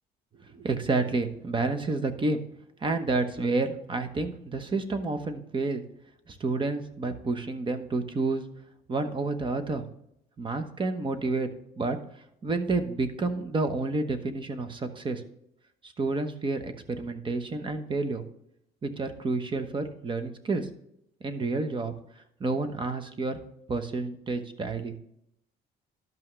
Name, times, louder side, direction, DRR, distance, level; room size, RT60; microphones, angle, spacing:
voice 1, 0.5-2.4 2.8-5.8 6.3-8.4 8.9-9.9 10.4-11.5 11.8-12.0 12.4-15.2 15.8-18.2 18.8-20.7 21.2-21.9 22.4-23.4 23.7-24.9, right 3 dB, 30° right, 8 dB, 1.1 m, -29 dB
12.0 x 5.6 x 3.2 m, 0.77 s
cardioid pair, 110°, 17 cm